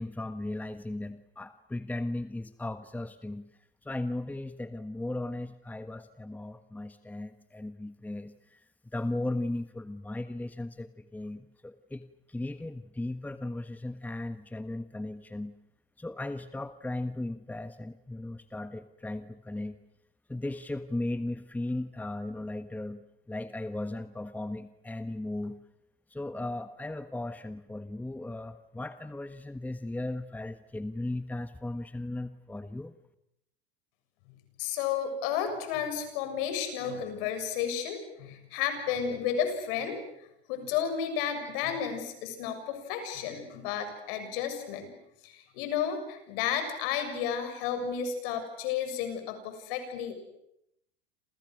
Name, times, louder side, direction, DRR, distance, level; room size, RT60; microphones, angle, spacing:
voice 1, 0.0-3.4 3.8-8.6 8.9-12.0 12.3-15.5 16.0-19.8 20.3-23.0 23.3-25.6 26.1-32.9, left 2 dB, 5° left, 10 dB, 1.4 m, -36 dB
voice 2, 34.6-40.0 40.5-45.0 45.2-50.2, left 8 dB, 65° left, 7 dB, 7.3 m, -32 dB
29.0 x 28.0 x 6.5 m, 0.80 s
hypercardioid pair, 90°, 30 cm